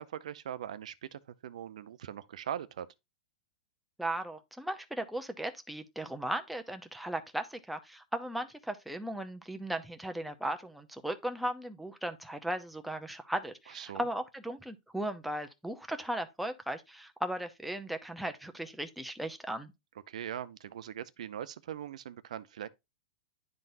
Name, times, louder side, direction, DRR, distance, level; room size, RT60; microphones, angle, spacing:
voice 1, 0.0-2.9 13.7-14.1 20.1-22.7, right 10 dB, 75° right, 0.5 m, -41 dB
voice 2, 4.0-19.7, right 1 dB, ahead, 0.6 m, -37 dB
10.5 x 3.8 x 2.6 m
hypercardioid pair, 130°, 4 cm